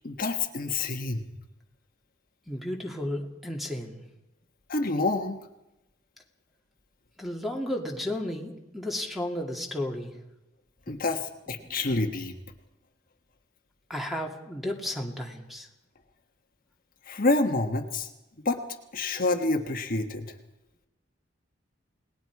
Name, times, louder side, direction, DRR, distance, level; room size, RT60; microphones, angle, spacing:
voice 1, 0.0-1.2 4.7-5.4 10.9-11.2 11.5-12.3 17.1-18.1 18.4-18.6 18.9-20.3, left 2 dB, 45° left, 4 dB, 1.4 m, -27 dB
voice 2, 2.5-4.0 7.2-10.1 10.9-11.0 11.6-11.7 13.9-15.7, left 1 dB, ahead, 2 dB, 2.5 m, -33 dB
28.5 x 19.5 x 4.8 m, 0.93 s
head